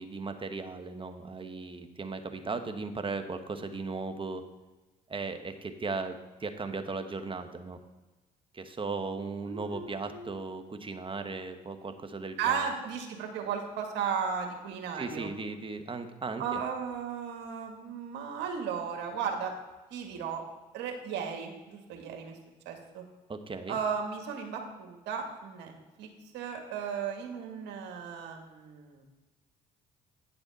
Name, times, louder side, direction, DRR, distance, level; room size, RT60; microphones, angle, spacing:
voice 1, 0.0-4.5 5.1-7.8 8.5-12.7 15.0-16.6 23.3-23.8, right 4 dB, 25° right, 7 dB, 1.2 m, -37 dB
voice 2, 9.5-10.3 12.4-15.3 16.4-19.5 19.9-20.4 20.7-22.4 22.7-23.0 23.7-26.1 26.3-29.0, right 6 dB, 70° right, 3 dB, 1.8 m, -35 dB
9.7 x 6.9 x 4.1 m, 1.2 s
hypercardioid pair, 55°, 19 cm